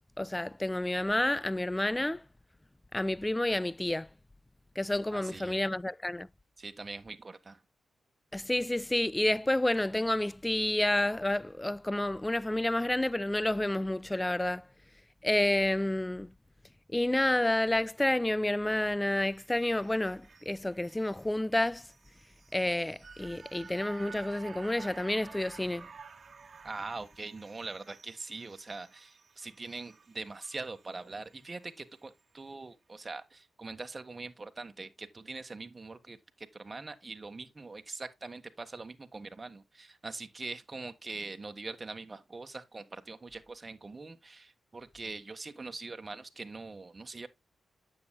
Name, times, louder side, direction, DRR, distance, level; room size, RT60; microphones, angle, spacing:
voice 1, 0.2-2.2 2.9-4.1 4.8-6.3 8.3-14.6 15.2-16.3 16.9-21.8 22.5-25.9, left 1 dB, 15° left, 0.4 m, -29 dB
voice 2, 5.1-5.6 6.6-7.6 26.6-47.3, right 3 dB, 35° right, 1.4 m, -43 dB
sound 1, 19.3-31.6 32.0-32.1, right 5 dB, 55° right, 1.3 m, -53 dB
9.6 x 7.9 x 2.2 m
supercardioid pair, 50°, 0 cm